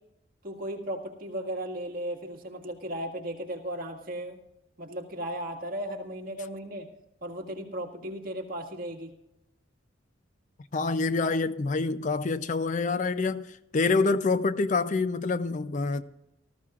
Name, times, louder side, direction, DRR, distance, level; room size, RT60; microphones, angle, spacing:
voice 1, 0.4-4.4 4.8-6.9 7.2-9.1, right 1 dB, 45° right, 1.9 m, -36 dB
voice 2, 10.7-13.5 13.7-16.0, left 3 dB, 40° left, 0.4 m, -26 dB
19.0 x 14.0 x 2.4 m
head